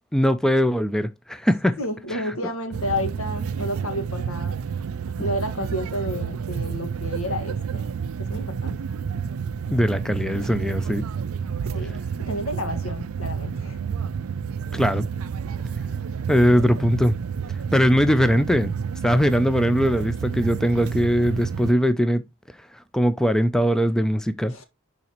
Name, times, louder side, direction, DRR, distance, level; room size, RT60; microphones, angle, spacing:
voice 1, 0.1-1.8 2.1-2.2 9.7-11.0 14.7-15.1 16.3-17.2 17.7-18.7 19.0-22.2 22.9-24.5, equal, 5° left, 0.4 m, -20 dB
voice 2, 1.8-4.6 5.2-7.8 8.2-8.8 11.7-13.8 24.5-24.6, equal, 80° left, 1.8 m, -31 dB
sound 1, 2.7-21.7, right 6 dB, 80° right, 0.4 m, -30 dB
10.5 x 4.0 x 3.0 m
head